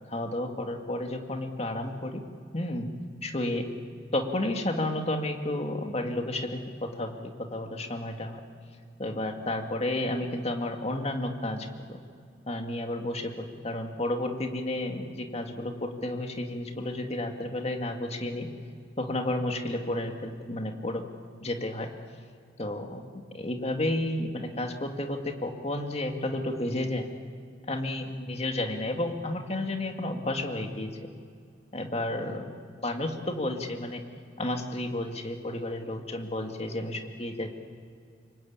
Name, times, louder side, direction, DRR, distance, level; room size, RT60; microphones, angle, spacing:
voice 1, 0.1-2.2 2.5-2.9 3.2-3.7 4.1-8.4 9.0-12.0 12.5-18.5 19.0-21.0 21.4-21.9 22.6-23.0 23.3-27.1 27.7-31.1 31.7-32.5 32.8-34.0 34.4-37.5, left 1 dB, 35° left, 4 dB, 2.1 m, -31 dB
27.5 x 24.0 x 8.9 m, 2.3 s
head